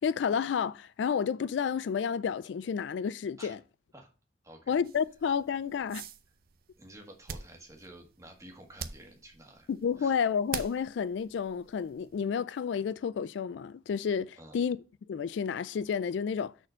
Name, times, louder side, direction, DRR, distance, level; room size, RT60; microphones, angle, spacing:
voice 1, 0.0-3.6 4.7-6.1 9.7-14.8 15.1-16.5, left 7 dB, 75° left, 0.3 m, -30 dB
voice 2, 4.4-4.7 6.8-9.7 10.0-10.2 14.4-14.6, right 1 dB, 15° right, 1.7 m, -51 dB
sound 1, 4.8-12.2, right 7 dB, 50° right, 0.6 m, -46 dB
6.4 x 4.3 x 6.2 m
head